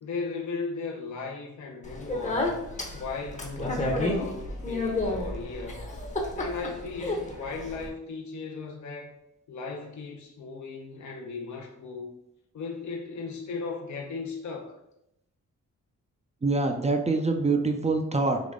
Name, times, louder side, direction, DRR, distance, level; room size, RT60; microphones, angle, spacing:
voice 1, 0.0-2.6 2.9-5.9 6.4-9.2 9.5-12.1 12.5-14.8, left 4 dB, 65° left, 0 dB, 0.7 m, -37 dB
Speech, 1.8-7.9, left 2 dB, 25° left, 0.8 m, -31 dB
voice 2, 16.4-18.4, right 3 dB, 20° right, 4 dB, 0.4 m, -25 dB
3.8 x 3.0 x 3.6 m, 0.82 s
wide cardioid pair, 110°, 31 cm